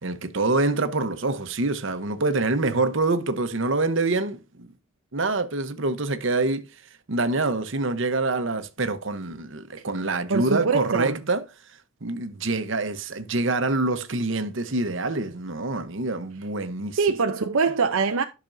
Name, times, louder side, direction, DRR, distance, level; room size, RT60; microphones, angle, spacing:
voice 1, 0.0-4.7 5.1-6.7 7.1-11.4 12.0-17.0, right 3 dB, 60° right, 0.9 m, -26 dB
voice 2, 10.3-11.2 17.0-18.2, right 5 dB, 75° right, 0.7 m, -23 dB
12.0 x 6.0 x 2.6 m
head